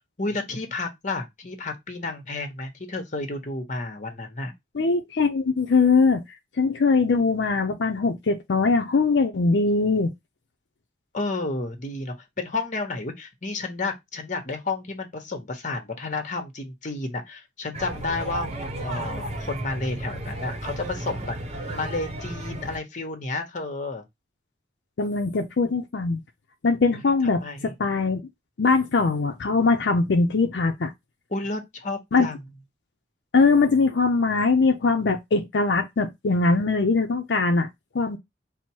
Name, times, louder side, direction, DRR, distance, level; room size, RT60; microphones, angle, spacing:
voice 1, 0.0-4.5 11.1-18.5 18.8-21.4 21.7-24.0 26.9-27.0 27.4-27.7 31.3-32.4, left 3 dB, 45° left, 1.0 m, -31 dB
voice 2, 4.7-6.2 6.6-10.1 25.0-26.2 26.6-28.2 28.6-30.9 32.1-32.3 33.3-37.7 37.9-38.2, left 4 dB, 75° left, 0.5 m, -21 dB
sound 1, 17.7-22.8, right 1 dB, 35° right, 0.8 m, -33 dB
4.3 x 2.1 x 4.4 m
head